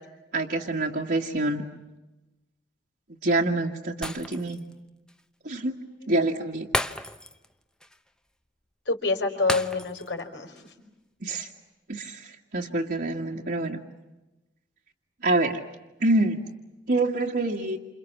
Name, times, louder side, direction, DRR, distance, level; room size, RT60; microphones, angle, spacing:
voice 1, 0.3-1.6 3.2-4.6 5.4-5.8 6.1-6.7 11.2-11.5 11.9-13.8 15.2-15.6 16.0-16.4 16.9-17.8, right 2 dB, 60° right, -3 dB, 2.0 m, -26 dB
Shatter, 4.0-4.7 5.1-5.2 6.7-7.5 7.8-8.0 9.5-10.2 10.6-10.7, left 1 dB, 5° left, 0.9 m, -32 dB
voice 2, 8.8-10.7, left 3 dB, 85° left, 5 dB, 4.8 m, -28 dB
29.0 x 28.0 x 7.3 m, 1.0 s
head